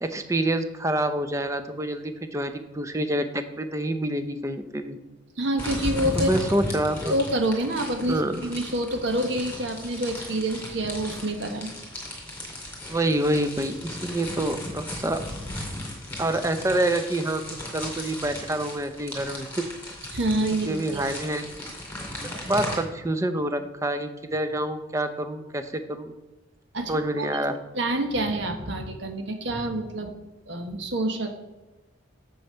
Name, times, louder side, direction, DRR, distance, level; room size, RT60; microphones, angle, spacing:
voice 1, 0.0-5.0 6.1-7.1 8.1-8.4 12.9-15.2 16.2-17.4 17.7-19.5 20.7-21.4 22.0-26.1 26.9-27.5, right 1 dB, 15° right, 8 dB, 0.6 m, -27 dB
voice 2, 5.4-6.3 7.1-11.7 20.1-21.1 26.7-27.3 27.7-30.1 30.5-31.3, right 1 dB, 65° right, 5 dB, 1.2 m, -27 dB
sound 1, 5.6-22.8, left 1 dB, 10° left, 2.2 m, -36 dB
7.0 x 6.4 x 5.5 m, 1.1 s
head